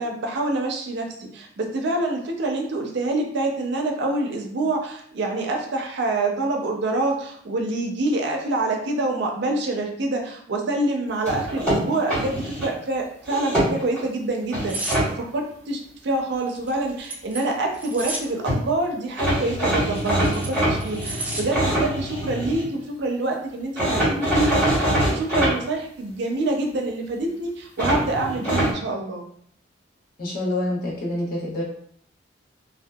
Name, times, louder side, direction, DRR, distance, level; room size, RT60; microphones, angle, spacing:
voice 1, 0.0-24.7 25.1-29.2, right 2 dB, 65° right, 2 dB, 0.5 m, -26 dB
sound 1, 11.3-12.7 13.2-14.0 14.5-15.1 18.2-18.3 18.4-18.6 19.2-22.7 23.8-25.5 27.8-28.7, right 1 dB, 10° left, 1.4 m, -23 dB
sound 2, 14.7-15.0 16.5-18.3 19.7-21.4 21.8-22.1, right 1 dB, 10° right, 0.3 m, -32 dB
voice 2, 30.2-31.6, left 1 dB, 55° left, -5 dB, 1.0 m, -27 dB
2.7 x 2.2 x 2.2 m, 0.65 s
head